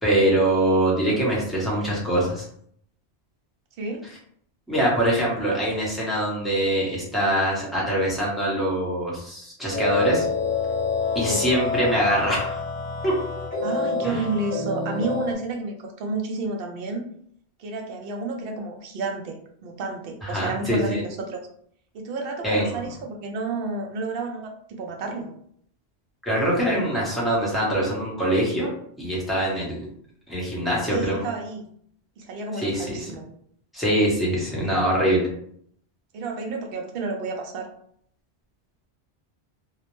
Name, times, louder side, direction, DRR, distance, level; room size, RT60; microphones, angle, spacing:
voice 1, 0.0-2.4 4.7-10.3 11.1-12.6 13.0-13.1 20.2-21.0 22.4-22.8 26.3-28.7 29.0-29.9 30.3-31.2 32.6-33.0 33.7-35.3, right 1 dB, ahead, -6 dB, 0.7 m, -23 dB
sound 1, 9.7-15.3, left 4 dB, 45° left, 0.9 m, -27 dB
voice 2, 13.6-17.1 17.6-21.4 21.9-25.3 30.9-31.7 32.2-33.3 34.8-35.0 36.1-37.7, right 3 dB, 65° right, 3 dB, 0.7 m, -31 dB
2.4 x 2.0 x 3.0 m, 0.65 s
omnidirectional pair, 1.2 m